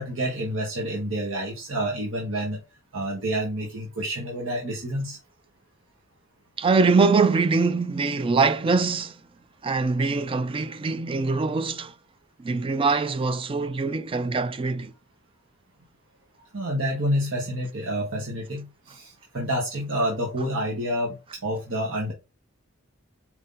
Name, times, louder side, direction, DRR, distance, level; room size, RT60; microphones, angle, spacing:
voice 1, 0.0-2.6 2.9-5.2 16.5-21.2 21.4-22.1, equal, 70° right, 1.1 m, -28 dB
voice 2, 6.6-9.2 9.6-11.9 12.4-14.9, right 4 dB, 25° right, 0.3 m, -23 dB
4.5 x 2.7 x 3.7 m
head